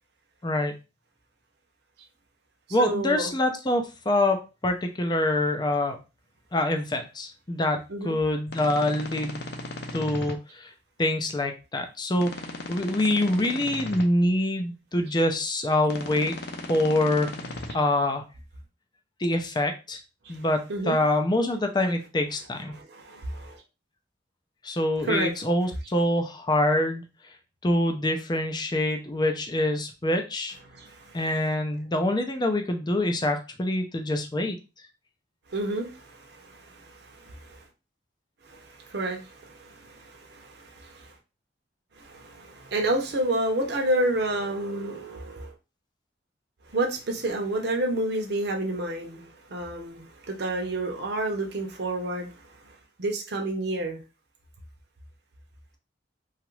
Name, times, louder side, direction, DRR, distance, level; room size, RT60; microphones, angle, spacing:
voice 1, 0.4-0.7 2.7-6.0 6.5-7.8 8.0-9.5 9.9-10.7 11.0-12.3 12.7-16.3 16.7-17.3 17.7-18.2 19.2-20.0 20.3-22.7 24.6-27.0 27.6-30.5 31.1-34.6, left 1 dB, 25° left, 0.5 m, -25 dB
voice 2, 2.8-3.3 7.9-8.2 20.2-20.4 20.7-21.0 22.7-23.6 25.1-25.3 30.7-31.2 35.5-37.6 38.4-41.1 42.0-45.5 46.7-54.0, right 1 dB, 65° right, 0.7 m, -30 dB
sound 1, 8.5-10.3 12.2-14.0 15.8-17.7, left 2 dB, 65° left, 0.6 m, -37 dB
2.9 x 2.4 x 3.1 m
head